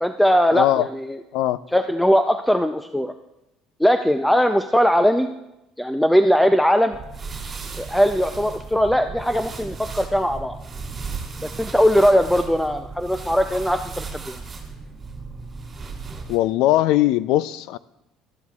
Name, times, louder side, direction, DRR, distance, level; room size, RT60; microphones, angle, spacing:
voice 1, 0.0-1.2 1.7-3.1 3.8-5.3 5.8-7.0 7.8-10.6 11.4-14.4, equal, 5° left, 7 dB, 0.4 m, -19 dB
voice 2, 0.5-0.9 1.3-1.6 16.3-17.8, left 14 dB, 75° left, 17 dB, 0.4 m, -20 dB
sound 1, 6.9-16.4, right 4 dB, 30° right, 2.8 m, -35 dB
17.0 x 12.5 x 2.3 m, 0.92 s
cardioid pair, 120°, 0 cm